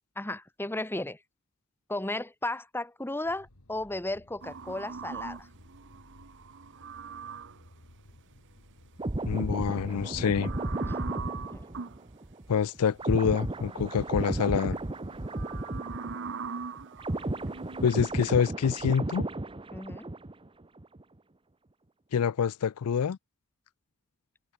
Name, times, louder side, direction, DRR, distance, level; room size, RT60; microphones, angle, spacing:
voice 1, 0.2-1.2 1.9-5.5 10.8-11.0 11.5-11.6 19.7-20.1, left 2 dB, 10° left, 1.3 m, -34 dB
sound 1, 3.2-10.8, left 1 dB, 70° left, 2.8 m, -56 dB
sound 2, 4.4-7.7 9.8-12.0 13.4-14.0 14.5-17.9, right 5 dB, 55° right, 0.9 m, -41 dB
sound 3, 9.0-16.5 16.8-20.5 20.8-21.0, right 2 dB, 25° right, 0.9 m, -34 dB
voice 2, 9.2-10.5 12.5-14.8 17.8-19.3 22.1-23.2, left 7 dB, 90° left, 0.4 m, -26 dB
head